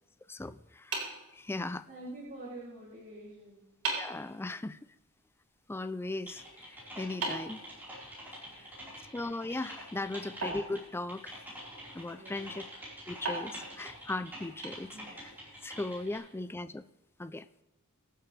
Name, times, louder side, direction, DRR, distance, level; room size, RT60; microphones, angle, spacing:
voice 1, 0.3-1.8 4.0-4.8 5.7-7.6 8.6-8.7 9.1-11.4 11.9-12.6 13.1-15.0 15.2-15.3 15.6-16.9 17.2-17.5, left 2 dB, 10° left, 13 dB, 0.3 m, -38 dB
sound 1, 0.9-2.0 3.2-3.3 3.8-4.3 7.2-8.4 10.4-11.5 13.2-15.3, right 3 dB, 70° right, 4.2 m, -39 dB
voice 2, 1.9-3.7 8.4-9.0 12.2-12.6 14.9-15.1 16.0-16.2, right 1 dB, 40° right, -7 dB, 3.2 m, -47 dB
Typing, 6.3-16.2, equal, 10° right, 4.3 m, -47 dB
23.0 x 7.8 x 3.3 m, 1.0 s
head